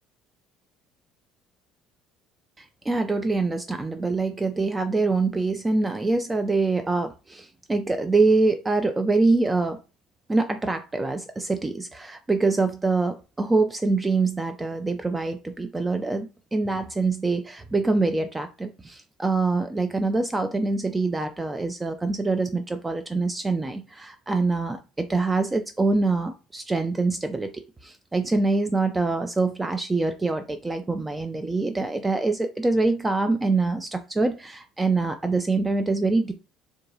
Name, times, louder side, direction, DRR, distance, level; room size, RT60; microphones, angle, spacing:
voice 1, 2.6-9.8 10.3-27.5 27.8-36.3, right 3 dB, 15° right, 7 dB, 0.3 m, -25 dB
3.5 x 2.2 x 2.7 m, 0.30 s
figure-of-eight pair, 55°, 0 cm